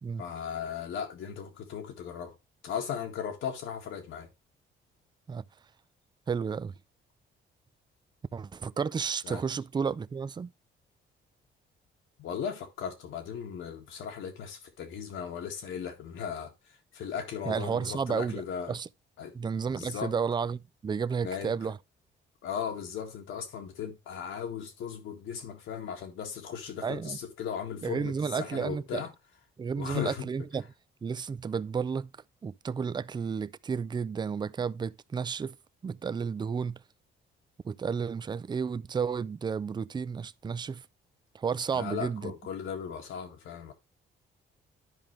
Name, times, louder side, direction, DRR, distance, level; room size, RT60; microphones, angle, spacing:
voice 1, 0.2-2.4 2.6-4.3 9.2-9.4 12.2-16.5 16.9-18.8 19.2-19.4 19.6-20.1 21.2-21.6 22.4-29.1 29.8-30.3 41.7-43.7, left 7 dB, 80° left, 2.0 m, -37 dB
voice 2, 6.3-6.7 8.3-10.5 17.4-18.9 19.3-21.8 26.8-27.2 27.8-29.0 29.6-30.7 31.0-32.1 32.4-35.6 35.8-36.8 37.6-40.9 41.3-42.3, right 6 dB, 20° right, 0.4 m, -32 dB
11.0 x 5.1 x 3.3 m
cardioid pair, 90°, 20 cm